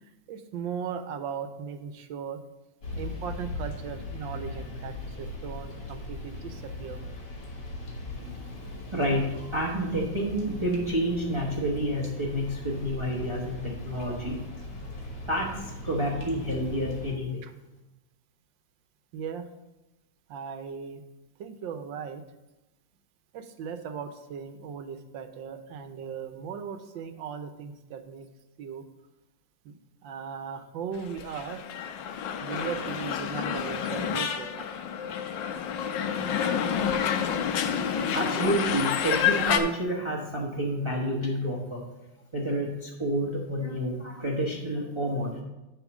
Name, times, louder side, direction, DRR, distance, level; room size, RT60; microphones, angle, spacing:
voice 1, 0.3-2.4 3.0-4.9 5.2-7.0 19.1-19.4 20.3-21.0 21.4-22.2 23.3-28.3 28.6-28.8 30.0-31.6 32.4-34.7, right 7 dB, 80° right, 9 dB, 1.4 m, -37 dB
sound 1, 2.8-17.1, left 1 dB, 55° left, 1.9 m, -39 dB
voice 2, 8.2-14.4 15.3-17.4 37.5-37.7 38.1-41.9 42.3-45.4, right 1 dB, 20° right, -2 dB, 0.8 m, -29 dB
sound 2, 31.2-39.6, left 8 dB, 80° left, 1.4 m, -29 dB
10.5 x 3.8 x 6.0 m, 1.0 s
omnidirectional pair, 2.0 m